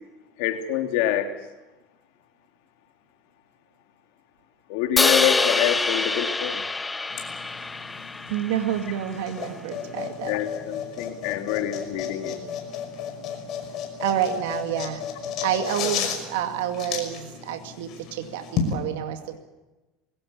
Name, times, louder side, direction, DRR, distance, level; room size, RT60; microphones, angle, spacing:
voice 1, 0.4-1.3 4.7-6.6 10.3-12.4, left 11 dB, 75° left, 6 dB, 2.9 m, -26 dB
Crash cymbal, 5.0-9.2, left 3 dB, 10° left, 0.7 m, -25 dB
sound 1, 7.1-18.7, left 7 dB, 45° left, 5.6 m, -33 dB
voice 2, 8.3-10.4 14.0-15.0 15.4-19.4, right 10 dB, 90° right, 6 dB, 2.3 m, -28 dB
22.5 x 18.0 x 8.4 m, 1.1 s
supercardioid pair, 135°, 0 cm